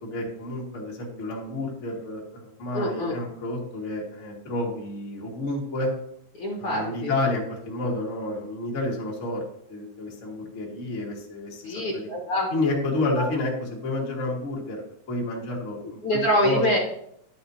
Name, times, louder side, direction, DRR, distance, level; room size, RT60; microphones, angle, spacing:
voice 1, 0.0-5.9 6.6-9.4 9.7-12.0 12.5-16.6, left 2 dB, 40° left, -2 dB, 1.0 m, -30 dB
voice 2, 2.7-3.1 6.4-7.1 11.6-13.3 16.0-16.8, left 1 dB, 60° left, -2 dB, 1.6 m, -26 dB
11.0 x 5.9 x 2.7 m, 0.72 s
omnidirectional pair, 3.8 m